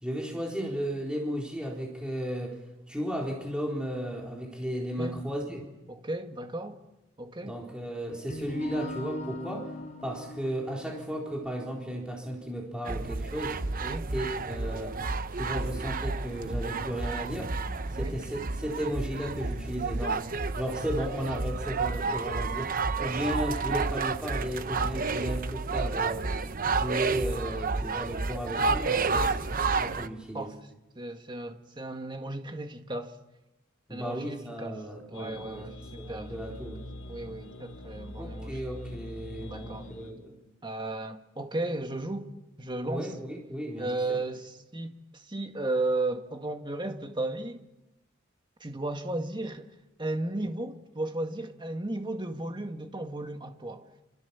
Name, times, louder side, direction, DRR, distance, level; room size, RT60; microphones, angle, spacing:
voice 1, 0.0-2.6 2.9-5.6 7.4-9.7 10.0-13.6 14.1-15.0 15.3-17.5 17.9-20.3 20.5-26.3 26.7-29.3 29.7-30.5 33.9-35.7 36.0-36.9 38.2-40.3 42.9-44.2, equal, 5° right, 4.0 m, -34 dB
voice 2, 5.9-6.8 7.2-7.6 13.8-14.0 18.0-18.2 28.9-29.3 30.3-30.6 31.0-33.2 33.9-34.8 35.1-36.4 37.1-38.6 39.4-39.9 40.6-42.3 42.6-43.1 43.8-47.6 48.6-49.7 50.0-53.9, right 2 dB, 25° right, 1.8 m, -34 dB
sound 1, 8.1-14.0, left 1 dB, 35° left, 5.8 m, -42 dB
sound 2, 12.8-30.1, right 4 dB, 45° right, 0.9 m, -31 dB
sound 3, 35.1-40.1, left 1 dB, 85° left, 5.1 m, -43 dB
27.5 x 27.5 x 7.2 m
head